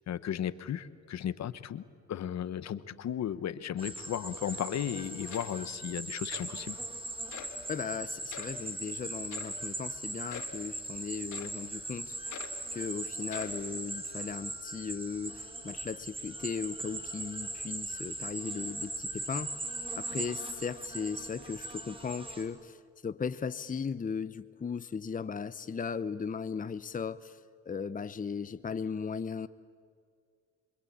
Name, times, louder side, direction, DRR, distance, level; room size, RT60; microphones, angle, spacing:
voice 1, 0.1-6.8, left 10 dB, 60° left, 1.2 m, -35 dB
sound 1, 3.8-22.4, right 1 dB, 15° right, 5.4 m, -40 dB
sound 2, 5.0-5.1 5.3-5.8 6.3-6.6 7.3-7.6 8.3-8.6 9.3-9.6 10.3-10.6 11.3-11.6 12.3-12.6 13.2-13.6, left 9 dB, 80° left, 3.1 m, -45 dB
voice 2, 7.7-12.2 12.7-19.5 20.0-22.8 23.0-27.4 27.7-29.5, left 6 dB, 25° left, 0.9 m, -37 dB
27.0 x 24.5 x 8.7 m
cardioid pair, 90°, 30 cm